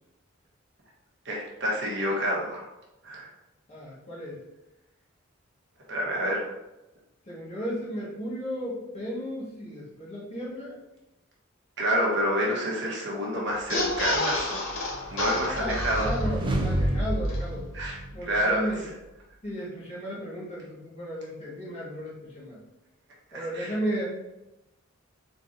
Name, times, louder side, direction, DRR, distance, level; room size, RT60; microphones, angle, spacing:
voice 1, 1.2-2.7 3.0-3.3 5.9-6.5 11.8-14.7 15.1-16.1 17.7-18.0 18.3-18.6 23.3-23.7, equal, 55° right, -3 dB, 1.1 m, -28 dB
voice 2, 3.7-4.4 7.3-10.8 15.6-17.7 18.1-18.9 19.4-22.6 23.3-24.0, equal, 30° left, -7 dB, 1.5 m, -34 dB
sound 1, 13.6-16.6 16.9-17.0 17.2-17.4, left 2 dB, 65° left, 0.9 m, -30 dB
sound 2, 14.7-18.5, right 1 dB, 25° right, 0.5 m, -29 dB
4.2 x 3.8 x 2.6 m, 0.97 s
head